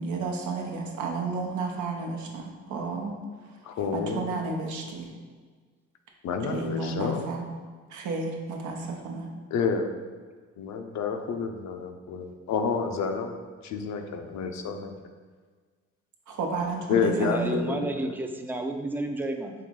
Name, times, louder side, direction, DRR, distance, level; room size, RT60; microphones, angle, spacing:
voice 1, 0.0-3.2 3.9-5.1 6.5-7.4 7.9-9.3 16.3-17.7, right 3 dB, 80° right, 1 dB, 0.8 m, -32 dB
voice 2, 3.6-4.3 6.2-7.2 9.5-9.9 10.6-13.4 13.6-14.9 16.9-18.1, left 5 dB, 65° left, 5 dB, 0.6 m, -29 dB
voice 3, 17.1-19.5, right 1 dB, 5° right, 4 dB, 0.4 m, -31 dB
4.7 x 3.0 x 3.7 m, 1.5 s
cardioid pair, 90°, 30 cm